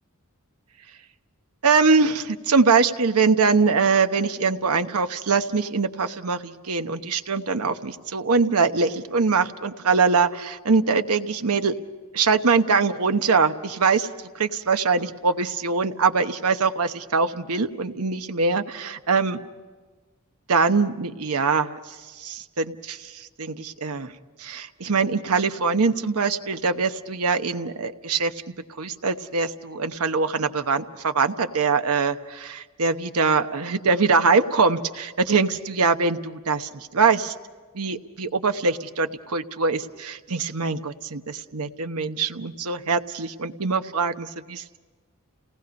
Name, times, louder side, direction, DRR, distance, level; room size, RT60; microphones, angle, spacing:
voice 1, 1.6-11.7 12.1-14.1 14.3-19.4 20.5-24.1 24.4-28.3 28.8-37.3 37.7-44.8, right 4 dB, 75° right, 8 dB, 1.0 m, -23 dB
30.0 x 19.0 x 5.3 m, 1.4 s
head